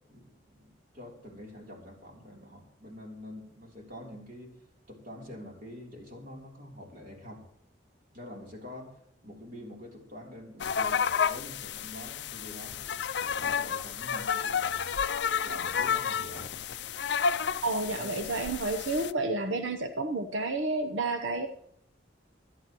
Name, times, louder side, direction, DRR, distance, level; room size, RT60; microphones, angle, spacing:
voice 1, 0.1-4.6 4.9-7.5 8.1-15.0 15.4-16.5 17.6-18.5, left 1 dB, 45° right, 0 dB, 3.4 m, -46 dB
sound 1, 10.6-19.1, left 7 dB, 60° left, 0.5 m, -31 dB
voice 2, 17.6-21.5, right 2 dB, 80° right, 5 dB, 0.9 m, -30 dB
25.5 x 9.7 x 3.1 m, 0.73 s
head